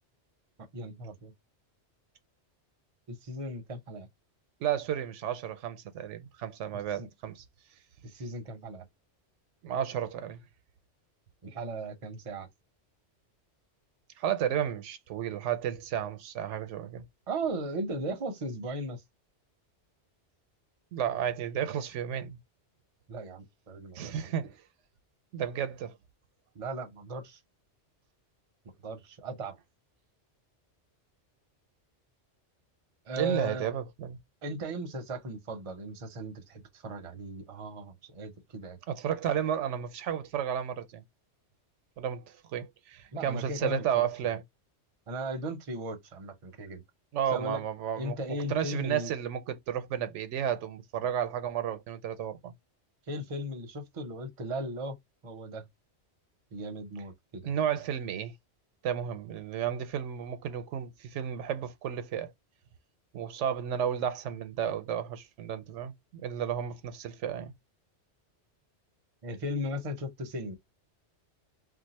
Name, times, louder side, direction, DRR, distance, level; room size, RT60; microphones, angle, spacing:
voice 1, 0.7-1.3 3.1-4.1 7.0-7.1 8.1-8.8 11.4-12.5 17.3-19.0 23.1-24.3 26.5-27.4 28.8-29.5 33.1-33.7 34.4-38.8 43.1-44.4 45.1-46.8 47.3-47.6 48.0-49.1 53.1-55.0 55.2-55.7 56.5-57.5 69.2-70.5, right 1 dB, 40° right, 0.6 m, -37 dB
voice 2, 4.6-7.4 9.6-10.4 14.2-17.0 20.9-22.4 23.9-24.6 25.3-26.0 33.2-34.2 38.9-41.0 42.0-44.4 47.1-48.2 48.5-52.5 57.4-58.3 58.8-62.3 63.1-67.5, right 9 dB, 85° right, 0.9 m, -32 dB
2.6 x 2.0 x 4.0 m
omnidirectional pair, 1.2 m